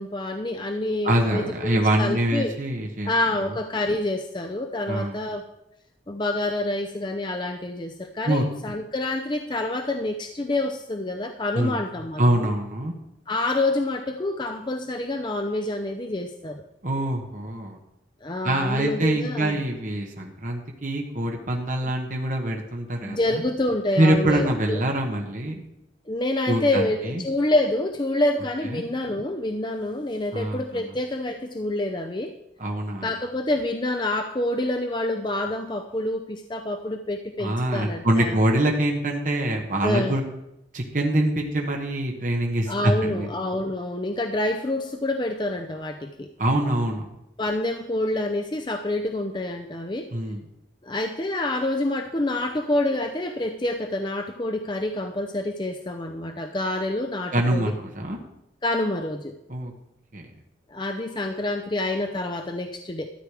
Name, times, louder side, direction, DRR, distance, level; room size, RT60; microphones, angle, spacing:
voice 1, 0.0-2.6 3.0-5.4 6.1-12.5 13.3-16.6 18.2-19.6 23.0-24.8 26.1-32.4 33.0-38.4 39.8-40.2 42.7-46.3 47.4-50.1 50.8-57.7 58.6-59.4 60.7-63.1, left 1 dB, 25° left, 5 dB, 0.6 m, -27 dB
voice 2, 1.0-3.1 4.9-5.2 8.3-8.4 11.5-11.8 12.2-12.9 16.8-17.8 18.4-23.4 24.0-25.6 26.5-27.2 28.6-28.8 30.3-30.9 32.6-33.1 37.4-40.2 40.7-43.3 46.4-47.1 50.1-50.4 57.3-58.2 59.5-59.7 60.1-60.3, right 1 dB, 45° right, 1 dB, 1.2 m, -24 dB
13.0 x 8.4 x 4.9 m, 0.85 s
head